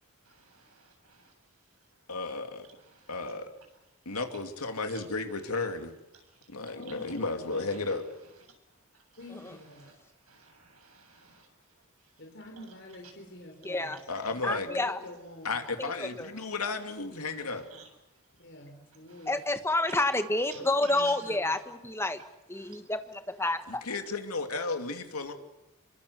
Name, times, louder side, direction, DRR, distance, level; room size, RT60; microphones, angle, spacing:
voice 1, 0.2-1.3 2.7-3.3 4.1-4.2 4.9-5.0 6.1-6.5 6.9-7.0 7.5-8.0 8.9-10.0 10.2-12.2 12.6-12.7 16.3-16.4 17.2-17.9 19.1-19.5 19.9-20.1 20.5-21.6 22.5-22.8, right 4 dB, 85° right, 4 dB, 7.8 m, -53 dB
voice 2, 2.1-2.7 3.1-3.5 4.0-5.9 6.5-8.0 14.1-14.7 15.4-17.6 23.7-25.3, left 3 dB, 90° left, 6 dB, 2.8 m, -33 dB
voice 3, 6.7-7.8 9.2-9.9 12.2-15.6 18.4-19.4 20.5-21.5, left 1 dB, 55° left, 2 dB, 3.7 m, -47 dB
voice 4, 13.6-14.0 14.4-15.0 15.8-16.3 19.3-22.2 22.5-23.8, left 2 dB, 10° left, 9 dB, 1.4 m, -29 dB
27.5 x 22.5 x 8.2 m, 0.93 s
head